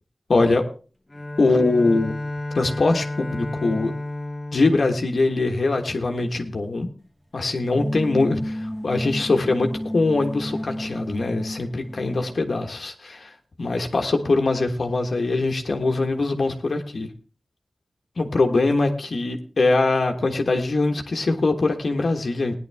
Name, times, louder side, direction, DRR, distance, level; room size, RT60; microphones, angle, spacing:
voice 1, 0.3-0.6 1.4-2.2 2.5-3.9 4.5-6.9 7.3-13.3 13.6-17.1 18.2-22.6, left 3 dB, 60° left, 4 dB, 1.4 m, -22 dB
Bowed string instrument, 1.1-6.2, left 1 dB, 25° left, 1.0 m, -32 dB
sound 1, 7.7-12.4, equal, 5° right, 1.1 m, -32 dB
16.5 x 10.5 x 3.5 m, 0.37 s
wide cardioid pair, 80°, 0 cm